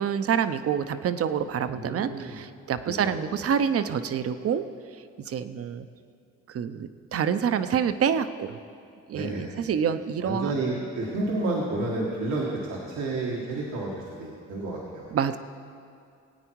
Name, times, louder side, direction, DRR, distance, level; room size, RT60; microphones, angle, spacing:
voice 1, 0.0-4.7 5.3-5.9 6.5-8.6 9.1-10.5 15.1-15.4, right 7 dB, 50° right, 11 dB, 0.7 m, -27 dB
voice 2, 1.7-2.4 3.0-3.2 9.1-9.6 10.2-15.1, right 2 dB, 90° right, -4 dB, 1.7 m, -30 dB
18.0 x 9.0 x 4.6 m, 2.4 s
cardioid pair, 90°, 30 cm